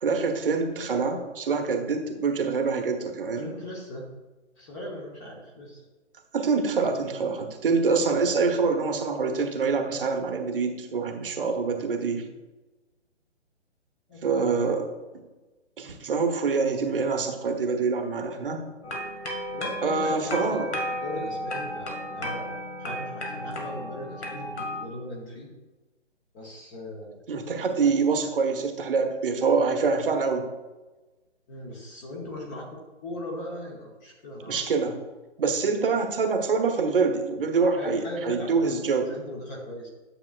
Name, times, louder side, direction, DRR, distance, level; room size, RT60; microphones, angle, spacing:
voice 1, 0.0-3.5 6.3-12.2 14.2-14.9 15.8-18.6 19.8-20.7 27.3-30.5 34.5-35.0 35.4-39.1, right 4 dB, 50° right, 5 dB, 1.0 m, -25 dB
voice 2, 3.4-4.1 4.6-5.8 11.8-11.9 14.1-14.5 19.5-22.5 22.8-25.5 26.3-27.2 31.5-34.6 37.8-39.9, left 1 dB, 15° left, -1 dB, 0.9 m, -38 dB
sound 1, 18.8-24.9, equal, 65° left, 2.1 m, -34 dB
10.0 x 7.1 x 2.4 m, 1.2 s
hypercardioid pair, 150°, 35 cm